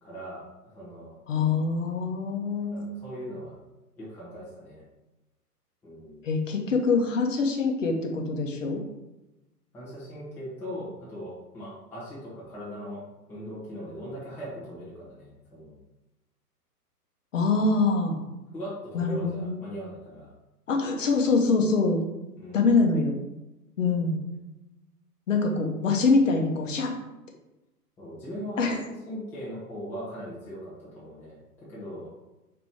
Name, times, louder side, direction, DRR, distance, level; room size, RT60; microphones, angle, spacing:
voice 1, 0.0-1.1 2.7-3.6 4.0-4.8 5.8-6.2 9.7-13.0 13.3-15.8 18.5-20.3 22.4-22.7 28.0-32.1, equal, 5° left, -9 dB, 0.6 m, -39 dB
voice 2, 1.3-2.9 6.2-8.8 17.3-18.2 18.9-19.6 20.7-22.0 22.5-23.1 23.8-24.2 25.3-26.9 28.6-28.8, left 4 dB, 50° left, 1 dB, 0.8 m, -24 dB
4.7 x 2.9 x 3.5 m, 1.0 s
figure-of-eight pair, 115°, 48 cm